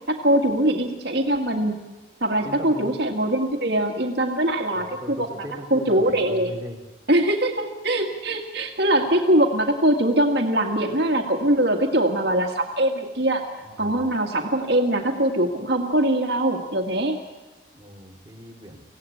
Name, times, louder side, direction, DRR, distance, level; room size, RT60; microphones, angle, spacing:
voice 1, 0.1-1.7 2.2-6.5 7.1-13.4 13.8-17.2, right 1 dB, 60° right, 3 dB, 2.0 m, -22 dB
voice 2, 2.4-2.9 4.7-6.8 13.6-14.0 17.7-18.8, equal, 20° right, 0 dB, 2.7 m, -38 dB
25.0 x 17.0 x 8.6 m, 1.1 s
head